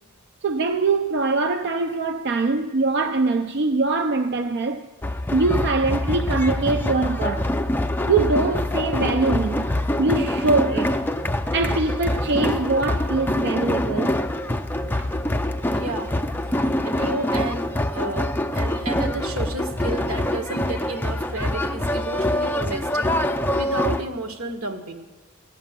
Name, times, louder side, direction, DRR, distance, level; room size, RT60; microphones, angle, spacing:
voice 1, 0.4-4.9 5.3-7.6 8.1-9.7 10.0-11.0 11.5-14.2 15.0-15.1, right 3 dB, 55° right, 0.5 m, -23 dB
sound 1, 5.0-24.0, left 1 dB, 10° left, 0.5 m, -25 dB
voice 2, 15.7-16.2 16.8-25.0, right 2 dB, 80° right, 1.5 m, -32 dB
15.0 x 8.7 x 7.4 m
head